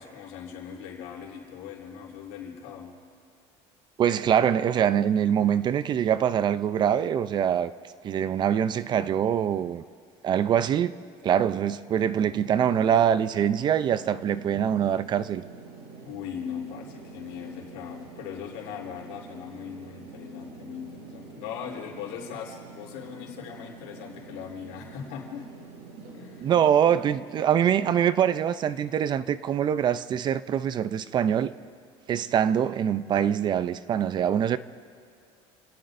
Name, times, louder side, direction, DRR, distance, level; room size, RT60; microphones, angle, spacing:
voice 1, 0.0-3.0 16.0-25.5 26.1-26.5, left 8 dB, 80° left, 3.4 m, -39 dB
voice 2, 4.0-7.7 8.0-9.8 10.2-10.9 11.2-15.4 26.4-31.5 32.1-34.6, right 9 dB, 35° right, 0.5 m, -24 dB
sound 1, 12.1-28.0, right 4 dB, 60° right, 4.6 m, -46 dB
28.0 x 18.0 x 2.6 m
cardioid pair, 130°, 13 cm